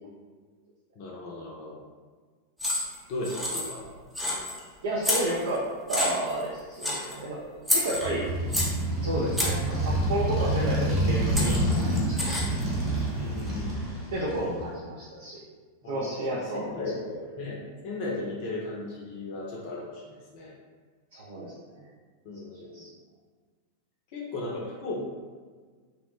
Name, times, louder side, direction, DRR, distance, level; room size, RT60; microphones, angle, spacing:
voice 1, 1.0-1.8 3.1-3.8 6.8-7.0 13.2-13.8 15.8-20.5 22.2-22.9 24.1-25.0, left 2 dB, 45° left, -3 dB, 0.5 m, -36 dB
sound 1, 2.6-3.0 3.2-3.9 4.2-4.6 5.0-5.6 5.9-6.4 6.8-7.2 7.7-8.8 9.3-9.7 10.9-11.0 11.4-12.6, left 1 dB, ahead, 0.5 m, -28 dB
voice 2, 4.8-8.3 9.0-12.5 14.1-15.4 15.8-16.8 21.1-21.9 22.7-22.9, right 1 dB, 60° right, -5 dB, 0.5 m, -32 dB
Motorcycle, 8.0-14.7, right 1 dB, 35° right, 0.9 m, -27 dB
2.7 x 2.0 x 2.9 m, 1.5 s
figure-of-eight pair, 90°, 0 cm